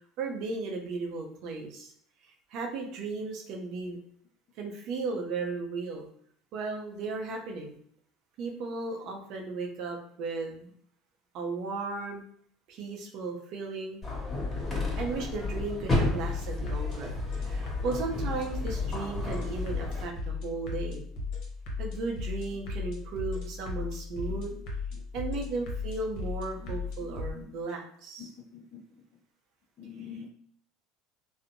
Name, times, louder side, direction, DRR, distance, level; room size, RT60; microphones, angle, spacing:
voice 1, 0.2-1.9 2.5-4.0 4.6-6.1 6.5-7.8 8.4-10.7 11.3-12.2 12.7-14.0 15.0-21.0 21.8-24.6 25.1-28.3, right 3 dB, 65° right, 2 dB, 0.5 m, -35 dB
sound 1, 14.0-20.0, left 2 dB, 20° left, 1.4 m, -32 dB
sound 2, 16.2-27.3, left 4 dB, 65° left, 0.8 m, -36 dB
voice 2, 28.2-28.8 29.8-30.3, left 7 dB, 45° left, 6 dB, 0.4 m, -45 dB
2.6 x 2.0 x 2.5 m, 0.62 s
supercardioid pair, 90°, 0 cm